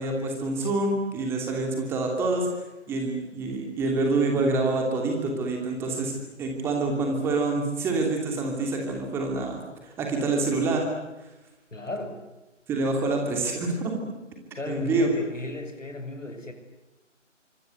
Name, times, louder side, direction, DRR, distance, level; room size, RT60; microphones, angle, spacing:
voice 1, 0.0-2.5 2.9-10.8 12.7-13.9 14.7-15.1, right 3 dB, 5° right, 2 dB, 2.8 m, -26 dB
voice 2, 11.7-12.2 14.5-16.5, left 1 dB, 75° left, 6 dB, 7.3 m, -35 dB
27.0 x 24.5 x 7.9 m, 1.1 s
figure-of-eight pair, 160°, 38 cm